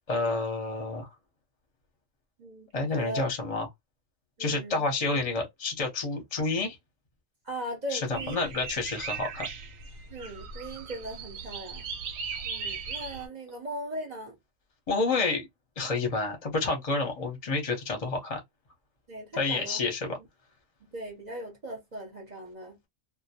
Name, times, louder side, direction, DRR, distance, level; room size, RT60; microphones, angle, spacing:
voice 1, 0.1-1.1 2.7-3.7 4.4-6.8 7.9-9.5 14.9-15.5 15.8-18.4 19.3-20.1, left 3 dB, 35° left, 0.7 m, -29 dB
voice 2, 2.4-3.2 4.4-4.8 7.5-8.4 10.1-11.9 12.4-14.4 19.1-19.8 20.8-22.8, right 1 dB, 40° right, 0.7 m, -39 dB
sound 1, 8.1-13.3, right 5 dB, 85° right, 1.0 m, -38 dB
2.1 x 2.1 x 2.7 m
omnidirectional pair, 1.4 m